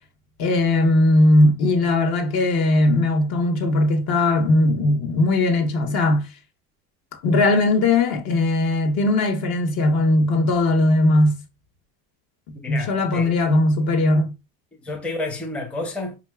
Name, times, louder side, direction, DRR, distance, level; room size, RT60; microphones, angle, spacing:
voice 1, 0.4-6.3 7.1-11.4 12.7-14.3, left 2 dB, 55° left, 1.1 m, -19 dB
voice 2, 12.6-13.4 14.8-16.2, left 2 dB, 5° left, 0.6 m, -30 dB
4.7 x 2.7 x 2.3 m
supercardioid pair, 90°, 44 cm